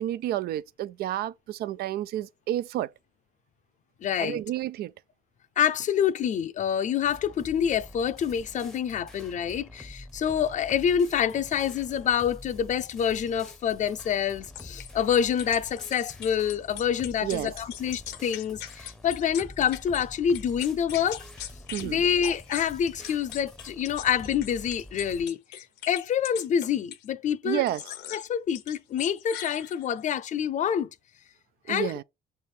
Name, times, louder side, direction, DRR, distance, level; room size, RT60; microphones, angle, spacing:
voice 1, 0.0-2.9 4.2-4.9 17.2-17.5 21.7-22.0 27.4-27.8 31.7-32.0, right 13 dB, 65° right, 0.4 m, -30 dB
voice 2, 4.0-4.4 5.6-21.2 21.8-27.6 28.1-30.9 31.7-31.9, left 8 dB, 45° left, 0.5 m, -27 dB
sound 1, 7.0-25.3, left 1 dB, 5° left, 0.7 m, -47 dB
sound 2, 14.6-20.1 20.3-21.9 22.2-27.1 27.7-28.3 28.6-30.0, left 11 dB, 90° left, 1.0 m, -41 dB
6.5 x 3.4 x 4.4 m
cardioid pair, 110°, 17 cm